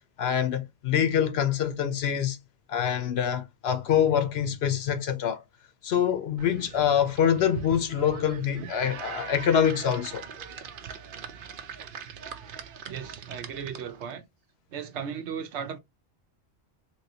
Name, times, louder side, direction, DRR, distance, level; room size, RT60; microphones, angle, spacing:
voice 1, 0.2-2.4 2.7-5.4 5.8-10.2, left 9 dB, 65° left, 0.8 m, -25 dB
sound 1, 6.4-14.1, right 7 dB, 55° right, 0.7 m, -41 dB
voice 2, 12.9-14.2 14.7-15.8, right 7 dB, 75° right, 1.0 m, -36 dB
3.2 x 3.0 x 2.7 m
omnidirectional pair, 1.2 m